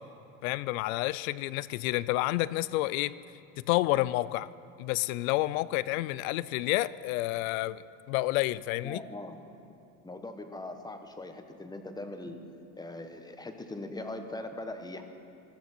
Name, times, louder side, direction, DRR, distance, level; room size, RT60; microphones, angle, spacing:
voice 1, 0.4-3.2 3.7-4.5 4.8-9.0, left 17 dB, 70° left, 18 dB, 0.6 m, -29 dB
voice 2, 8.8-9.4 10.0-12.4 12.8-15.0, left 2 dB, 10° left, 6 dB, 1.2 m, -40 dB
20.5 x 14.0 x 4.5 m, 2.7 s
supercardioid pair, 110°, 43 cm